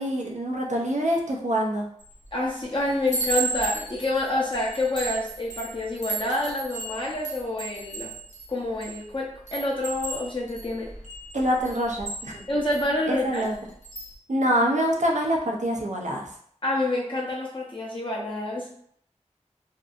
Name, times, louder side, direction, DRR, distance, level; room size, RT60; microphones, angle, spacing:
voice 1, 0.0-1.9 11.3-12.4 13.1-13.5 14.3-16.3, equal, 70° right, 0 dB, 0.6 m, -25 dB
Chime, 2.0-2.3 2.7-9.0 9.5-12.9 13.3-13.5 13.8-14.1, right 3 dB, 75° left, 0.8 m, -34 dB
voice 2, 2.3-8.1 8.5-10.9 12.5-13.5 16.6-18.7, left 1 dB, 45° left, -5 dB, 0.6 m, -28 dB
2.7 x 2.5 x 2.3 m, 0.64 s
wide cardioid pair, 50°, 13 cm